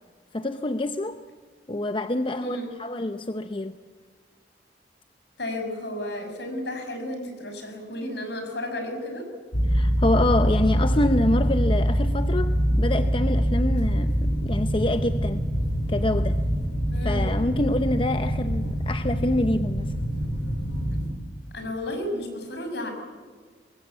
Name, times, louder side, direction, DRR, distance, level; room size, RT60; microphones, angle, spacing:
voice 1, 0.3-1.2 1.7-3.7 9.7-15.4 15.9-16.4 17.0-19.9, left 1 dB, 30° left, 0.7 m, -26 dB
voice 2, 5.4-9.3 16.9-17.3 21.5-22.9, left 1 dB, 65° left, 6.1 m, -32 dB
sound 1, 9.5-21.1, equal, 90° left, 4.9 m, -24 dB
24.0 x 22.0 x 8.4 m
head